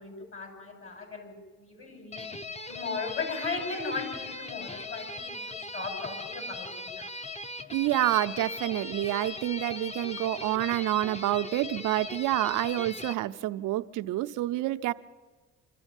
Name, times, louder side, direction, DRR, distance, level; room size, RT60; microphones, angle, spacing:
voice 1, 0.0-2.2 2.7-7.1 11.1-11.2, left 4 dB, 45° left, 4 dB, 5.9 m, -37 dB
sound 1, 2.1-13.1, left 3 dB, 20° left, 1.0 m, -39 dB
voice 2, 7.7-14.9, right 15 dB, 90° right, 11 dB, 0.7 m, -28 dB
25.5 x 14.0 x 9.1 m, 1.4 s
cardioid pair, 90°, 30 cm